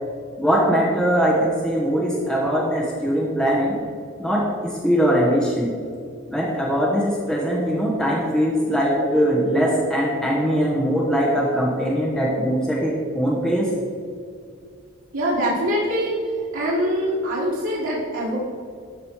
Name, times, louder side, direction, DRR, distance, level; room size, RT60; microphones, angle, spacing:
voice 1, 0.4-3.8 4.2-5.7 6.3-13.7, equal, 5° left, -4 dB, 1.1 m, -21 dB
voice 2, 15.1-16.2 16.5-18.4, equal, 85° right, -7 dB, 1.8 m, -23 dB
12.5 x 5.2 x 4.7 m, 2.3 s
head